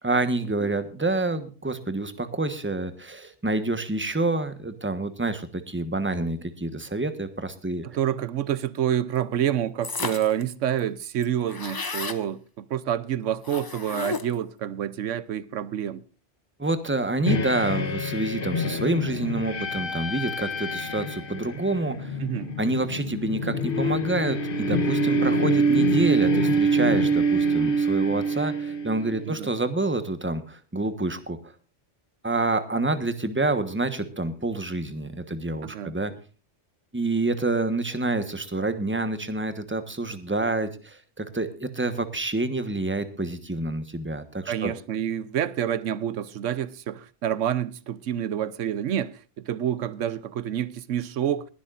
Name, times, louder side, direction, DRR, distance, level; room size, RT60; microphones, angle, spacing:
voice 1, 0.0-7.8 16.6-22.2 22.6-31.4 32.2-36.1 36.9-44.7, right 2 dB, 10° right, 1.2 m, -28 dB
voice 2, 7.8-16.0 22.2-22.5 29.3-29.5 35.6-35.9 44.5-51.5, right 10 dB, 85° right, 1.1 m, -28 dB
sound 1, 9.8-10.4 10.8-10.9 11.1-12.2 13.4-14.5, left 4 dB, 25° left, 0.6 m, -33 dB
sound 2, 17.3-29.3, right 2 dB, 50° left, 1.3 m, -25 dB
21.0 x 11.5 x 2.5 m
omnidirectional pair, 1.2 m